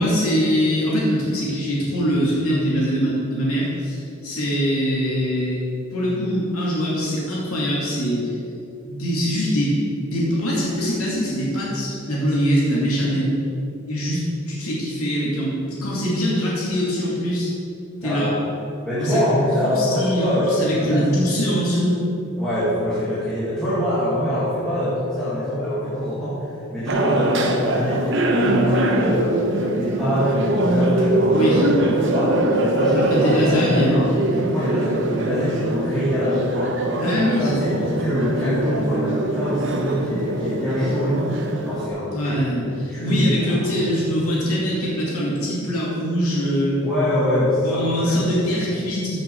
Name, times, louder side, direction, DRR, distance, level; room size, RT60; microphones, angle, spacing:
voice 1, 0.0-5.6 5.9-8.3 8.9-9.8 10.0-13.3 13.9-17.5 18.0-18.3 19.0-19.2 19.6-22.0 31.3-31.6 32.9-34.0 37.0-37.5 42.1-46.8 47.6-49.2, equal, 80° left, -6 dB, 2.7 m, -23 dB
voice 2, 18.0-18.4 18.8-21.2 22.4-28.1 28.4-29.4 29.7-34.1 34.3-36.7 37.1-44.0 46.8-48.4, equal, 5° left, -14 dB, 2.3 m, -24 dB
sound 1, 26.9-41.9, right 1 dB, 55° right, 1.0 m, -22 dB
14.5 x 5.9 x 4.7 m, 2.8 s
head